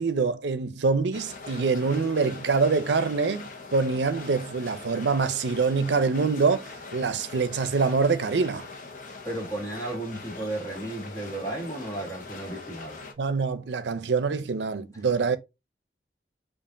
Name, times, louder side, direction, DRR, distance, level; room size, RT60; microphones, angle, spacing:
voice 1, 0.0-8.7 13.2-15.4, right 4 dB, 80° right, 0.5 m, -25 dB
sound 1, 1.1-13.1, left 3 dB, 50° left, 0.8 m, -42 dB
voice 2, 9.2-13.0 14.9-15.0, right 2 dB, 20° left, 1.4 m, -34 dB
5.2 x 2.5 x 2.6 m
head